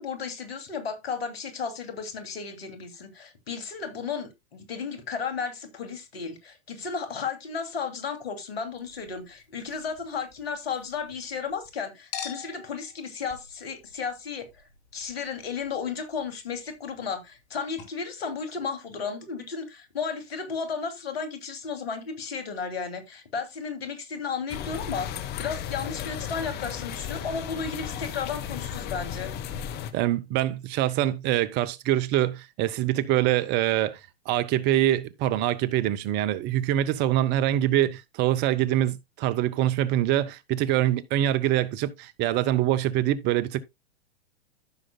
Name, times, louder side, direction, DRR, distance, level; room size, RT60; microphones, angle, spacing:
voice 1, 0.0-14.6 14.9-29.3, left 5 dB, 70° left, 2.8 m, -34 dB
Chink clink, 8.7-11.7 12.1-17.5 17.8-17.9, left 8 dB, 45° left, 2.9 m, -46 dB
sound 1, 24.5-29.9, left 9 dB, 30° left, 1.1 m, -35 dB
voice 2, 29.9-34.0 34.3-43.6, right 13 dB, 35° right, 0.7 m, -24 dB
14.5 x 6.3 x 2.2 m
hypercardioid pair, 110°, 31 cm